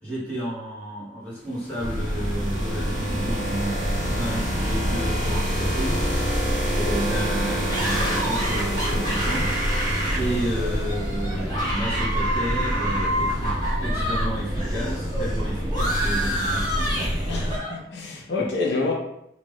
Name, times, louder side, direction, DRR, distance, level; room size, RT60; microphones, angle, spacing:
voice 1, 0.0-6.0 6.7-9.5 10.1-17.1 18.4-18.5, right 1 dB, 5° left, -10 dB, 1.4 m, -31 dB
Glitch Transition, 1.5-11.4, right 1 dB, 40° right, 1.0 m, -30 dB
sound 1, 1.8-17.6, equal, 20° right, 0.6 m, -28 dB
sound 2, 7.7-14.3 14.5-17.7, equal, 25° left, 1.0 m, -29 dB
voice 2, 17.3-18.9, left 3 dB, 70° left, -1 dB, 0.6 m, -27 dB
3.4 x 2.5 x 3.4 m, 0.80 s
head